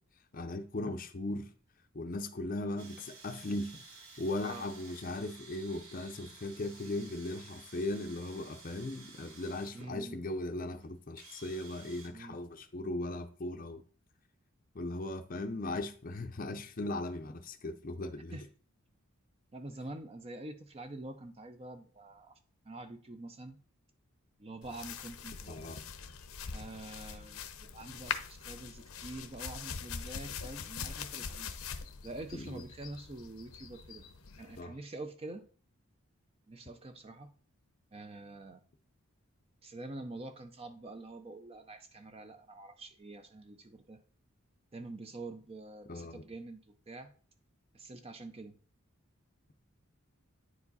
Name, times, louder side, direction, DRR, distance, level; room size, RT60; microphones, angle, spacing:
voice 1, 0.3-1.5 1.9-3.8 4.2-13.8 14.7-18.4 25.5-25.8 32.3-32.6 34.6-34.7 45.9-46.2, left 2 dB, 40° left, 0.6 m, -38 dB
sound 1, 2.8-9.9 10.8-10.9 11.2-12.1, right 4 dB, 75° right, 2.2 m, -54 dB
voice 2, 9.7-10.2 12.1-12.4 18.3-18.5 19.5-22.4 22.6-23.6 24.4-25.8 26.5-31.5 32.0-34.1 34.4-35.5 36.5-37.3 37.9-38.6 39.6-44.0 44.7-47.1 47.7-48.6, right 2 dB, 25° right, 0.5 m, -46 dB
sound 2, 24.6-34.6, left 6 dB, 75° left, 0.8 m, -43 dB
9.5 x 4.7 x 4.0 m
head